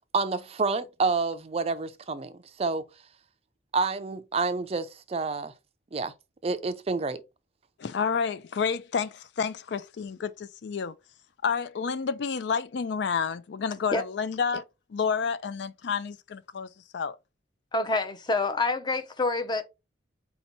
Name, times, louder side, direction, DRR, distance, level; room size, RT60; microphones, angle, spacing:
voice 1, 0.1-2.8 3.7-5.5 5.9-6.1 6.4-7.2, right 4 dB, 35° right, 0.4 m, -28 dB
voice 2, 7.8-10.9 11.4-14.6 14.9-17.2, left 6 dB, 65° left, 0.4 m, -30 dB
voice 3, 17.7-19.6, left 3 dB, 25° left, 0.6 m, -27 dB
4.4 x 2.8 x 4.0 m
head